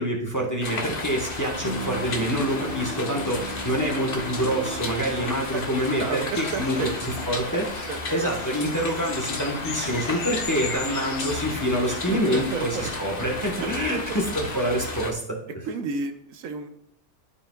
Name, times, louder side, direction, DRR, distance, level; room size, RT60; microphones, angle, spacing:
voice 1, 0.0-6.8 7.0-15.6, equal, 15° left, 0 dB, 0.9 m, -27 dB
sound 1, 0.6-15.1, left 3 dB, 45° left, 1.1 m, -33 dB
Bowed string instrument, 1.5-7.0, right 1 dB, 35° right, 2.4 m, -37 dB
voice 2, 6.0-7.0 7.9-8.0 11.9-13.1 13.6-14.2 15.6-16.7, right 5 dB, 75° right, 7 dB, 1.1 m, -32 dB
sound 2, 6.3-11.3, left 6 dB, 70° left, 1.1 m, -38 dB
13.0 x 5.0 x 2.3 m, 0.73 s
omnidirectional pair, 1.5 m